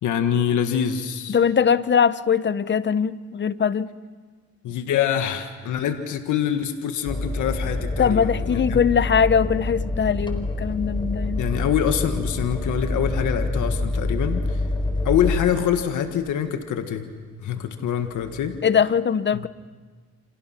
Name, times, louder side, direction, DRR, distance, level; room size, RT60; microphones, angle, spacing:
voice 1, 0.0-1.4 4.6-8.8 11.4-14.6 15.1-17.1 17.4-18.6 19.3-19.4, left 9 dB, 75° left, 7 dB, 1.8 m, -25 dB
voice 2, 1.3-3.9 8.0-11.4 18.6-19.5, left 7 dB, 40° left, 15 dB, 0.9 m, -21 dB
sound 1, 7.1-16.2 18.2-18.6, left 2 dB, 15° left, 4.4 m, -27 dB
28.5 x 28.0 x 6.0 m, 1.4 s
cardioid pair, 90°, 30 cm